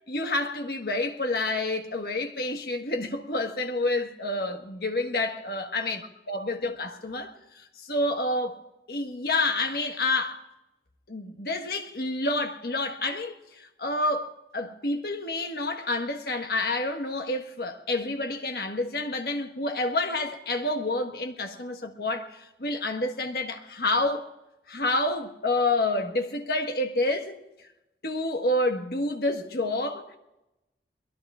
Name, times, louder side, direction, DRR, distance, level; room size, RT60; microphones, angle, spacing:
voice 1, 0.1-6.0 6.3-8.6 8.9-10.4 11.1-24.2 24.7-27.4 28.0-30.2, left 2 dB, 60° left, 1.5 m, -28 dB
23.0 x 21.0 x 2.5 m
head